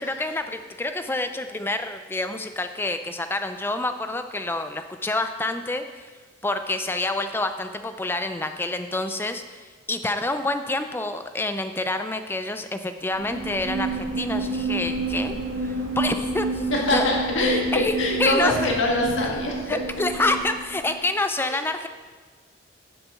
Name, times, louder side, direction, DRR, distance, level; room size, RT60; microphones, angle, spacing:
voice 1, 0.0-6.1 6.4-15.4 15.6-17.1 17.7-18.7 19.2-19.3 19.7-21.9, left 2 dB, 10° left, 8 dB, 0.3 m, -28 dB
sound 1, 13.1-21.0, right 2 dB, 75° right, 1.2 m, -29 dB
voice 2, 16.7-19.8 21.5-21.6, left 1 dB, 70° left, -1 dB, 1.7 m, -24 dB
10.0 x 8.1 x 3.6 m, 1.5 s
head